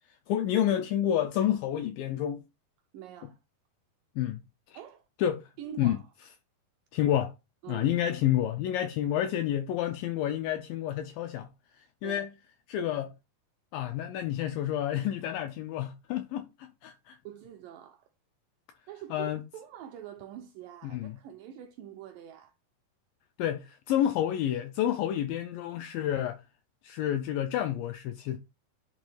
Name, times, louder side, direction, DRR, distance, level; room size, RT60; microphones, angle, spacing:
voice 1, 0.3-2.4 4.2-4.4 4.7-4.8 5.2-5.5 5.8-6.0 6.9-7.3 7.7-12.3 12.7-13.1 13.7-17.2 19.1-19.4 20.9-21.2 23.4-26.4 26.8-28.4, left 11 dB, 85° left, 2.0 m, -29 dB
voice 2, 2.9-3.4 4.7-5.1 5.6-6.1 7.6-7.9 12.0-12.3 17.2-18.1 18.9-22.5, right 10 dB, 80° right, 2.0 m, -45 dB
10.5 x 3.7 x 3.2 m
omnidirectional pair, 4.5 m